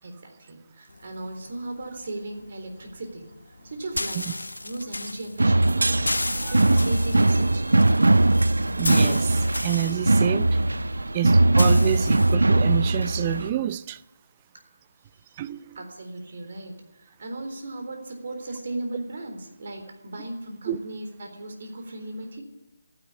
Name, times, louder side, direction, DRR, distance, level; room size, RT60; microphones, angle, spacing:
voice 1, 0.0-3.2 3.6-6.1 6.5-7.6 15.8-22.4, right 2 dB, 50° right, 3.9 m, -36 dB
sound 1, 0.9-12.4, left 2 dB, 85° left, 1.0 m, -35 dB
sound 2, 5.4-13.5, right 2 dB, 80° right, 0.5 m, -20 dB
voice 2, 8.8-10.6 11.1-14.0 15.4-15.8 20.7-20.8, right 12 dB, 25° right, 0.5 m, -28 dB
14.0 x 10.5 x 9.7 m
figure-of-eight pair, 160°, 0 cm